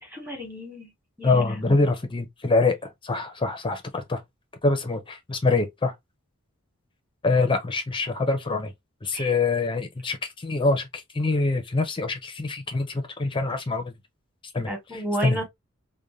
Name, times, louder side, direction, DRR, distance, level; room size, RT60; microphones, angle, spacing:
voice 1, 0.0-0.9 1.2-1.8 9.1-9.3 14.6-15.5, right 1 dB, 10° right, 1.0 m, -32 dB
voice 2, 1.2-2.8 3.0-4.2 4.6-5.9 7.2-8.7 9.0-13.9 14.5-14.7 15.2-15.4, left 3 dB, 25° left, 0.5 m, -24 dB
2.5 x 2.1 x 3.0 m
head